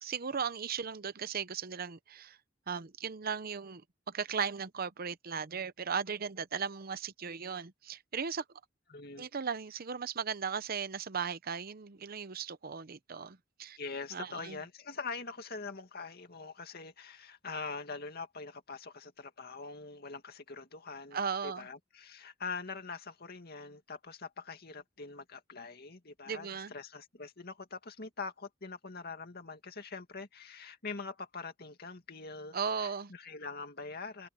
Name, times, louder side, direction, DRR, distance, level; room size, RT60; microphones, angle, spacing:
voice 1, 0.0-2.4 2.7-8.4 9.2-13.8 14.1-14.6 21.1-21.7 26.3-26.7 32.5-33.1, right 6 dB, 50° right, 0.8 m, -37 dB
voice 2, 8.9-9.3 13.8-34.3, left 4 dB, 55° left, 2.3 m, -43 dB
head